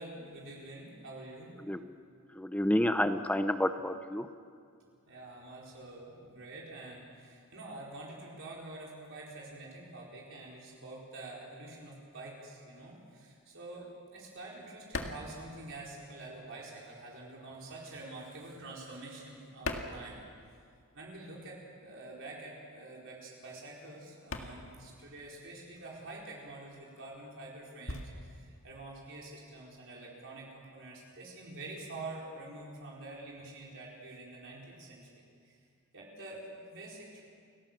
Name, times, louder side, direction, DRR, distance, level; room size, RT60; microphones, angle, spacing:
voice 1, 0.0-1.5 5.0-20.2 20.9-35.6 35.9-37.2, right 2 dB, 60° right, -4 dB, 4.5 m, -47 dB
voice 2, 1.6-1.9 2.3-4.3, left 1 dB, 5° left, 9 dB, 0.7 m, -29 dB
sound 1, 13.5-16.5 16.7-20.9 21.1-29.9, left 2 dB, 65° left, 1.9 m, -44 dB
29.5 x 18.5 x 7.4 m, 2.2 s
head